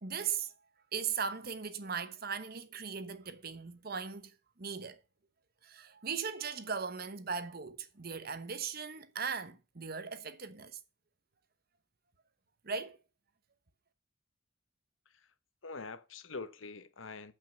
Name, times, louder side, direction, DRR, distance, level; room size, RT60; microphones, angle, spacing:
voice 1, 0.0-0.5 0.9-5.0 5.6-10.8 12.6-13.0, right 6 dB, 50° right, 1.1 m, -38 dB
voice 2, 15.6-17.3, left 4 dB, 85° left, 1.1 m, -45 dB
9.2 x 5.7 x 5.6 m
head